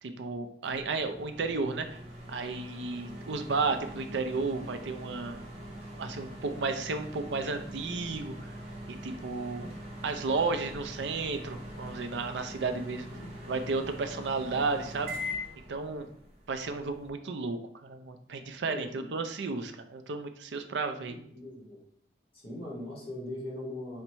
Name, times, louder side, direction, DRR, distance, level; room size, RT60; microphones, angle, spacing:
voice 1, 0.0-2.0 2.3-5.4 6.0-8.5 8.9-9.8 10.0-13.1 13.5-15.4 15.7-16.1 16.5-21.2, right 4 dB, 85° right, 7 dB, 0.5 m, -33 dB
sound 1, 0.6-17.1, equal, 35° right, 0.8 m, -43 dB
voice 2, 12.9-13.3 18.7-19.1 21.1-21.8 22.3-24.0, left 1 dB, 30° left, -4 dB, 1.5 m, -41 dB
3.9 x 2.2 x 4.5 m, 0.65 s
head